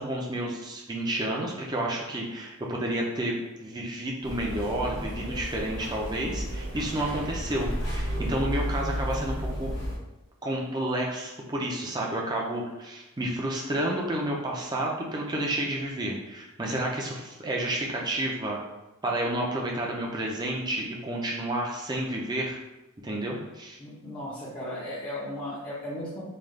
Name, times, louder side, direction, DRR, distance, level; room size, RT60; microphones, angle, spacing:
voice 1, 0.0-3.3 3.6-9.7 10.4-18.6 19.0-22.6 23.0-23.8, right 1 dB, 20° right, -2 dB, 0.5 m, -30 dB
sound 1, 4.2-10.0, equal, 50° left, 1.1 m, -32 dB
voice 2, 23.8-26.2, left 1 dB, 20° left, -9 dB, 0.6 m, -36 dB
3.3 x 2.3 x 3.6 m, 1.0 s
head